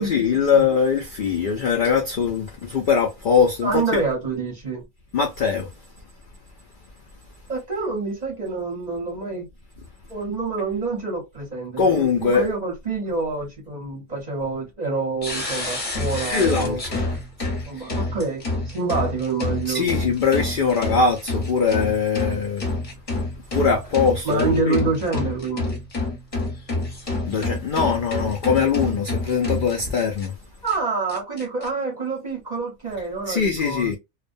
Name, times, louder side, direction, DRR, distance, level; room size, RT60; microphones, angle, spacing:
voice 1, 0.0-4.0 5.1-5.7 11.8-12.5 16.3-17.0 19.7-22.7 23.5-24.8 27.3-30.3 33.3-34.0, left 5 dB, 80° left, 0.4 m, -21 dB
voice 2, 3.6-4.8 7.5-9.5 10.1-16.8 17.7-19.9 24.2-25.8 30.6-34.0, right 4 dB, 40° right, 0.7 m, -27 dB
sound 1, 15.2-30.3 30.7-30.8 31.1-31.7, left 2 dB, 30° left, 0.8 m, -28 dB
2.4 x 2.1 x 2.4 m
omnidirectional pair, 1.5 m